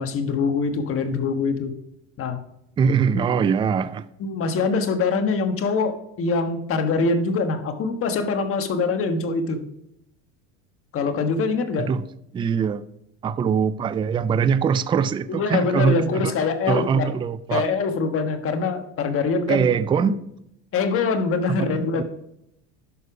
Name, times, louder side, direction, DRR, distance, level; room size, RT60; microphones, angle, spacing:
voice 1, 0.0-1.7 2.2-2.4 3.2-3.3 4.2-9.6 10.9-11.9 15.3-17.1 17.5-19.7 20.0-20.1 20.7-22.0, left 4 dB, 40° left, 1.4 m, -24 dB
voice 2, 2.8-4.0 11.8-12.0 12.3-12.8 13.2-16.3 16.7-17.7 19.5-20.2 21.5-22.0, right 6 dB, 15° right, 0.3 m, -22 dB
11.0 x 6.7 x 4.9 m
supercardioid pair, 115°, 36 cm